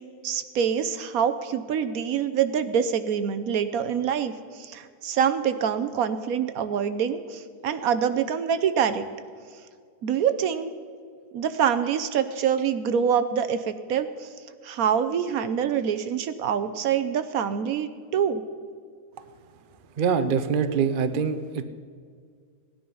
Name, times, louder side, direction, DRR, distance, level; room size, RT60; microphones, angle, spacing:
voice 1, 0.2-9.1 10.0-10.7 11.3-14.3 14.6-18.4, right 8 dB, 70° right, 10 dB, 1.1 m, -25 dB
voice 2, 20.0-21.6, right 6 dB, 45° right, 10 dB, 0.7 m, -24 dB
17.5 x 10.5 x 5.5 m, 2.1 s
omnidirectional pair, 1.6 m